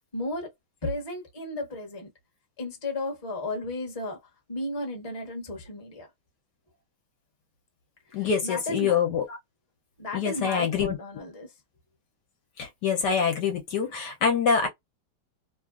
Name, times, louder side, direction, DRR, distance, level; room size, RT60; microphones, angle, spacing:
voice 1, 0.1-0.5 0.8-2.1 2.6-4.2 4.5-6.1 8.4-9.0 10.0-11.5, left 2 dB, 25° left, 0.9 m, -34 dB
voice 2, 8.1-9.4 10.1-11.0 12.6-14.7, left 6 dB, 70° left, 1.2 m, -25 dB
3.1 x 2.3 x 2.3 m
omnidirectional pair, 2.1 m